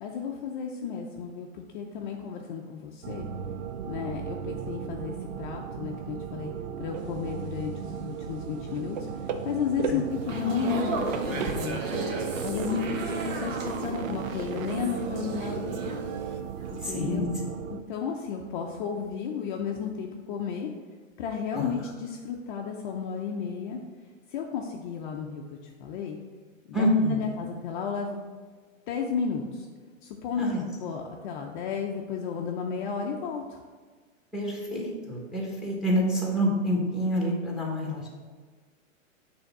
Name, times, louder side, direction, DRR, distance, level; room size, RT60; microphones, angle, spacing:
voice 1, 0.0-3.3 3.8-6.5 6.8-12.1 12.4-16.0 16.7-17.3 17.7-20.7 21.2-23.8 24.3-26.2 26.7-28.2 28.9-29.7 30.0-30.5 30.8-33.6, left 6 dB, 40° left, 1 dB, 0.6 m, -33 dB
sound 1, 3.0-17.8, right 7 dB, 85° right, 0.6 m, -37 dB
sound 2, 6.9-7.4 7.7-16.4, right 6 dB, 35° right, 0.4 m, -37 dB
sound 3, 10.1-16.4 16.7-16.9, right 2 dB, 70° right, 1.4 m, -35 dB
voice 2, 16.8-17.3 21.5-21.8 26.7-27.2 30.4-30.6 34.3-38.1, equal, ahead, -1 dB, 1.4 m, -27 dB
6.6 x 3.5 x 5.9 m, 1.5 s
hypercardioid pair, 140°, 40 cm